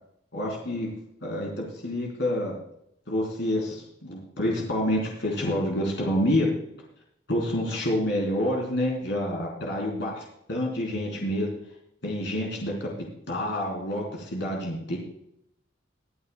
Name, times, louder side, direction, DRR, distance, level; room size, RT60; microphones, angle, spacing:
voice 1, 0.3-0.9 1.2-2.6 3.1-6.5 7.3-11.5 12.0-12.9 13.3-15.0, left 1 dB, 70° left, -1 dB, 3.8 m, -28 dB
22.0 x 9.5 x 2.3 m, 0.74 s
head